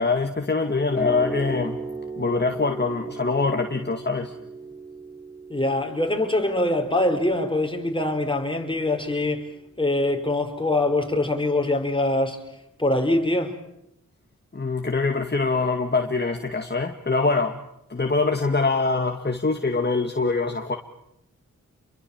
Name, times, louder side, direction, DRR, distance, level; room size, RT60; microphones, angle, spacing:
voice 1, 0.0-1.8 2.2-4.3 14.5-17.6 17.9-20.8, left 3 dB, 35° left, 2.2 m, -24 dB
sound 1, 0.9-8.9, right 3 dB, 5° right, 7.0 m, -37 dB
voice 2, 5.5-9.5 9.8-12.4 12.8-13.6, left 1 dB, 15° left, 5.1 m, -23 dB
30.0 x 23.0 x 7.3 m
cardioid pair, 55°, 31 cm